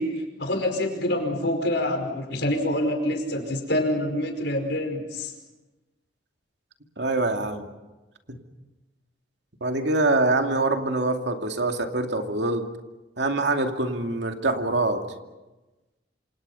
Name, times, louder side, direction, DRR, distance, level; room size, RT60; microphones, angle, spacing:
voice 1, 0.0-5.3, left 1 dB, 65° left, 4 dB, 5.2 m, -26 dB
voice 2, 7.0-7.7 8.3-8.4 9.6-12.7 13.2-15.0, right 2 dB, 65° right, 4 dB, 2.5 m, -24 dB
28.0 x 27.5 x 5.7 m, 1.1 s
head